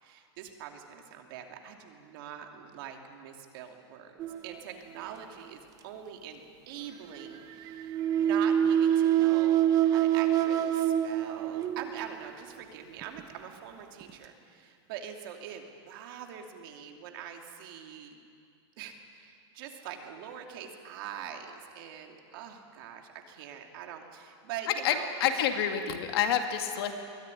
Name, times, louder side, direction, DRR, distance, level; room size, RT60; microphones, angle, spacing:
voice 1, 0.0-18.2 18.8-25.3, right 8 dB, 50° right, 3 dB, 2.7 m, -43 dB
sound 1, 4.2-5.2 7.2-12.3 13.0-13.2 14.0-14.1, right 10 dB, 25° right, 0.8 m, -26 dB
voice 2, 24.7-27.0, left 9 dB, 60° left, 5 dB, 2.3 m, -28 dB
22.5 x 17.5 x 10.0 m, 2.3 s
supercardioid pair, 165°, 14 cm